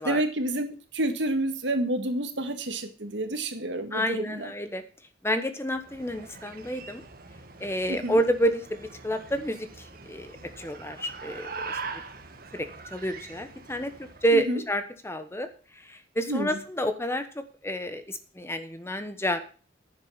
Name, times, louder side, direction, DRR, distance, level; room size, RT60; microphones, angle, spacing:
voice 1, 0.0-4.5 7.9-8.2 14.3-14.6 16.3-16.6, right 1 dB, 75° right, 7 dB, 1.8 m, -29 dB
voice 2, 3.9-4.8 5.2-7.0 7.6-11.8 12.5-15.5 15.8-19.4, equal, 15° left, 9 dB, 1.1 m, -29 dB
sound 1, 5.7-14.4, right 4 dB, 55° right, 1.6 m, -42 dB
10.5 x 7.4 x 7.2 m, 0.38 s
head